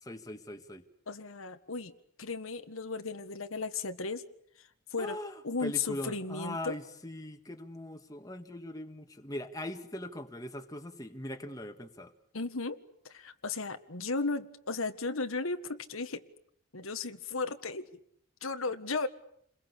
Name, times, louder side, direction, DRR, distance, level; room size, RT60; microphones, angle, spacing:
voice 1, 0.0-0.9 5.0-12.1, left 1 dB, 15° left, 5 dB, 1.9 m, -41 dB
voice 2, 1.1-1.9 2.2-4.2 4.9-5.2 5.4-6.7 12.3-12.8 13.0-16.2 16.7-17.8 18.4-19.1, left 3 dB, 85° left, 8 dB, 1.7 m, -35 dB
29.5 x 22.0 x 8.5 m, 0.69 s
head